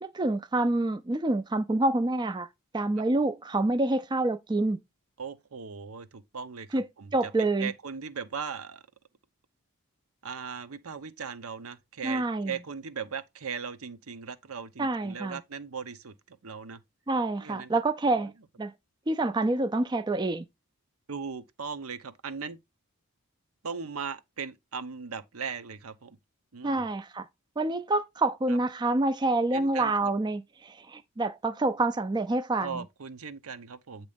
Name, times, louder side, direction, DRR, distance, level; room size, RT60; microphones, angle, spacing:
voice 1, 0.0-2.5 2.7-4.8 6.7-6.8 7.1-7.7 12.0-12.5 14.8-15.4 17.1-18.3 18.6-18.7 19.1-20.4 26.6-27.3 27.6-32.8, right 2 dB, 20° right, 0.4 m, -27 dB
voice 2, 5.2-7.3 7.6-8.8 10.2-16.8 17.4-17.7 18.1-18.3 21.1-22.6 23.6-26.2 26.5-26.9 28.5-28.6 29.5-30.1 32.6-34.1, right 6 dB, 75° right, 0.8 m, -38 dB
8.6 x 3.0 x 5.1 m
head